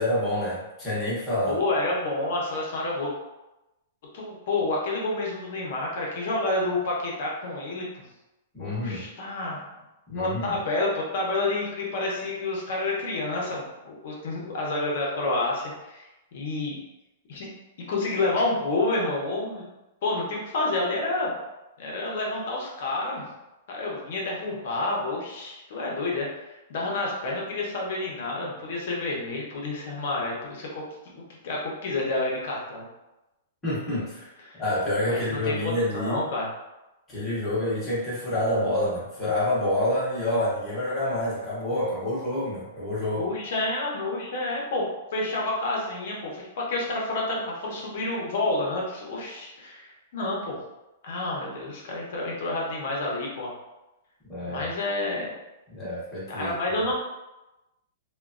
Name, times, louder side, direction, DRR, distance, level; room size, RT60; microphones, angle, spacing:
voice 1, 0.0-1.6 8.5-9.1 10.1-10.6 33.6-36.2 37.1-43.2 54.3-54.6 55.7-56.5, left 1 dB, 5° left, -10 dB, 0.7 m, -28 dB
voice 2, 1.5-3.1 4.1-8.0 8.6-9.6 10.1-16.8 17.3-17.5 17.9-19.7 20.0-21.3 21.8-23.3 23.7-26.3 26.7-30.8 31.1-32.9 34.5-34.6 35.1-36.5 43.2-44.9 45.1-50.6 51.0-53.5 54.4-55.3 56.3-56.9, left 2 dB, 45° left, -2 dB, 0.7 m, -29 dB
3.0 x 2.2 x 2.4 m, 1.0 s
hypercardioid pair, 180°, 0 cm